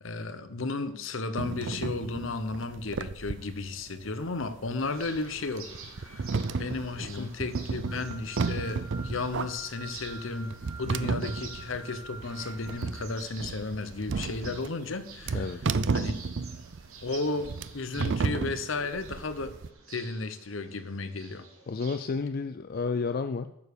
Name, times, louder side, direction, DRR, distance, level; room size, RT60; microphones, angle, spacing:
voice 1, 0.0-5.7 6.0-6.3 6.6-15.4 15.9-16.1 17.0-19.5 19.9-21.5, left 3 dB, 65° left, 11 dB, 0.9 m, -34 dB
sound 1, 1.4-19.7, right 4 dB, 60° right, 0.5 m, -33 dB
sound 2, 4.8-22.0, right 5 dB, 85° right, 2.2 m, -50 dB
voice 2, 7.0-7.3 15.3-15.6 21.7-23.5, left 4 dB, 45° left, 9 dB, 0.4 m, -31 dB
sound 3, 7.9-13.1, right 3 dB, 5° right, 2.0 m, -47 dB
9.6 x 6.9 x 6.8 m, 0.85 s
head